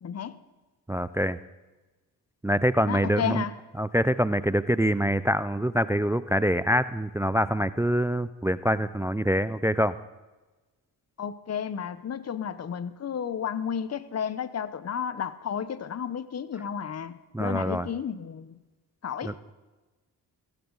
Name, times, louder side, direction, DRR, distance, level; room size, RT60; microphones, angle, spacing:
voice 1, 0.0-0.4 2.9-3.5 11.2-18.6 19.0-19.3, left 7 dB, 35° left, 15 dB, 0.8 m, -32 dB
voice 2, 0.9-1.4 2.4-3.4 3.8-10.0 17.3-17.9 19.2-19.3, equal, 5° right, 16 dB, 0.4 m, -25 dB
16.0 x 15.5 x 3.9 m, 1.2 s
supercardioid pair, 55°, 43 cm